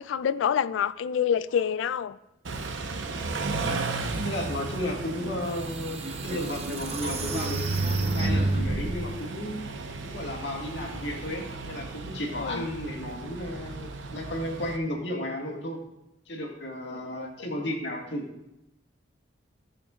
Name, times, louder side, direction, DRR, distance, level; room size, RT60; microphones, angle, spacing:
voice 1, 0.0-2.2 12.3-12.7 16.9-17.3, left 8 dB, 80° left, 0.3 m, -27 dB
Car / Idling / Accelerating revving vroom, 2.4-14.8, right 3 dB, 80° right, 0.8 m, -35 dB
voice 2, 4.2-7.6 7.9-9.7 10.0-15.8 16.3-18.3, left 1 dB, 65° left, 1.6 m, -34 dB
sound 1, 5.2-5.3 5.9-9.0, right 2 dB, 30° right, 0.6 m, -28 dB
16.0 x 6.4 x 2.4 m
head